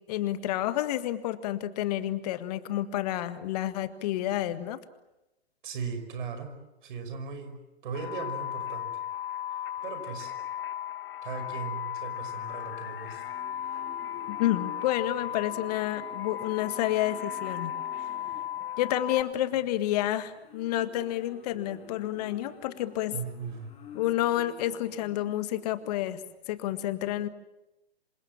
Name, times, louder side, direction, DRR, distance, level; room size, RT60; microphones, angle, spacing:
voice 1, 0.0-4.8 14.3-17.7 18.8-23.2 23.9-26.2 26.5-27.3, left 13 dB, 40° left, 12 dB, 1.7 m, -29 dB
voice 2, 5.6-6.5 6.8-9.0 9.8-10.3 11.2-13.3 23.1-23.7, right 5 dB, 50° right, 9 dB, 5.6 m, -38 dB
sound 1, 7.9-19.2, left 10 dB, 60° left, 1.8 m, -36 dB
Livestock farm animals working animals, 12.0-26.7, left 5 dB, 20° left, 5.3 m, -50 dB
27.0 x 26.0 x 7.5 m, 0.95 s
figure-of-eight pair, 125°, 32 cm